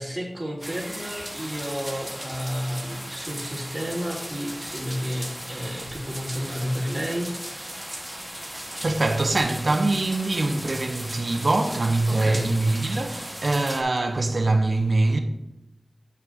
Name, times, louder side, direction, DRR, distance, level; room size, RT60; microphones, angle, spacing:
voice 1, 0.0-7.7 12.1-12.5, equal, 30° right, 2.4 m, -31 dB
sound 1, 0.6-13.8, equal, 10° right, 1.0 m, -37 dB
voice 2, 8.6-15.2, right 2 dB, 75° right, 0.7 m, -23 dB
9.1 x 5.9 x 2.5 m
wide cardioid pair, 45°, 0 cm